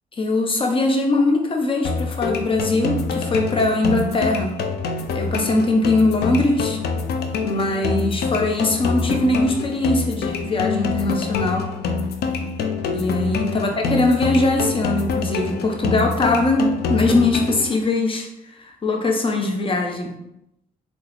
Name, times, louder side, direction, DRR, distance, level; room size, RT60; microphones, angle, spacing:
voice 1, 0.2-4.6 5.1-6.8 7.4-11.7 12.9-20.2, left 2 dB, 30° left, 2 dB, 0.7 m, -21 dB
sound 1, 1.8-17.8, left 4 dB, 75° left, 0.4 m, -26 dB
3.6 x 2.0 x 3.0 m, 0.85 s
supercardioid pair, 65°, 17 cm